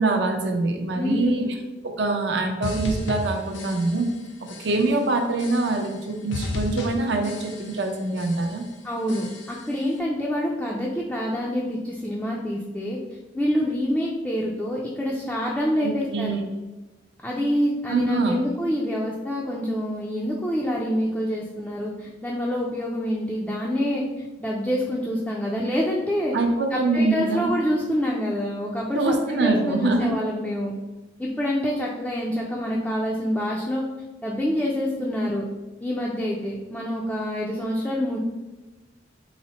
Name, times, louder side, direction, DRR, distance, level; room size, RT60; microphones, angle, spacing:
voice 1, 0.0-1.5 1.8-4.1 4.6-8.6 15.8-16.5 17.9-18.4 26.3-27.5 28.9-30.1, right 2 dB, 70° right, 4 dB, 0.5 m, -24 dB
voice 2, 0.9-1.5 8.8-13.0 13.3-16.4 17.2-26.4 26.7-30.7 31.2-33.8 34.2-35.4 35.8-38.2, equal, 5° left, -4 dB, 0.3 m, -26 dB
sound 1, 2.6-4.2 4.5-5.0 5.4-6.0 6.3-7.9 8.2-8.7 9.1-9.7, left 2 dB, 80° left, 0.6 m, -34 dB
4.1 x 2.1 x 3.9 m, 1.1 s
head